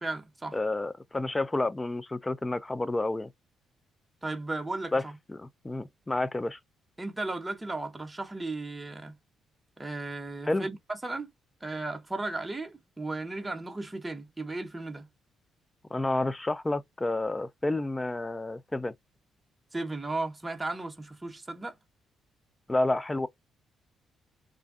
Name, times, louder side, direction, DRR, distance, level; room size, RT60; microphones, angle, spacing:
voice 1, 0.0-0.6 4.2-5.2 7.0-9.1 9.8-11.3 11.6-15.1 19.7-21.8, right 2 dB, 15° right, 0.7 m, -35 dB
voice 2, 0.5-3.3 4.9-5.0 5.3-6.6 10.5-10.7 15.9-18.9 22.7-23.3, left 2 dB, 15° left, 0.4 m, -30 dB
2.5 x 2.2 x 3.5 m
cardioid pair, 90°, 0 cm